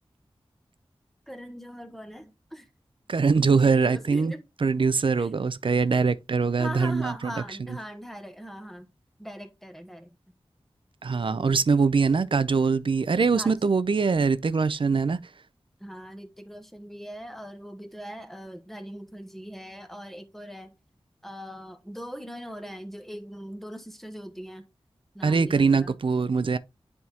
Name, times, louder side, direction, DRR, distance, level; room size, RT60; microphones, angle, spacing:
voice 1, 1.3-2.7 3.5-4.4 5.2-5.3 6.6-8.9 9.2-10.1 13.3-13.6 15.8-20.7 21.2-24.7 25.1-26.0, equal, 5° left, 1.1 m, -40 dB
voice 2, 3.1-7.8 11.0-15.2 25.2-26.6, right 5 dB, 60° right, 0.5 m, -23 dB
9.5 x 3.6 x 2.9 m
wide cardioid pair, 90°, 10 cm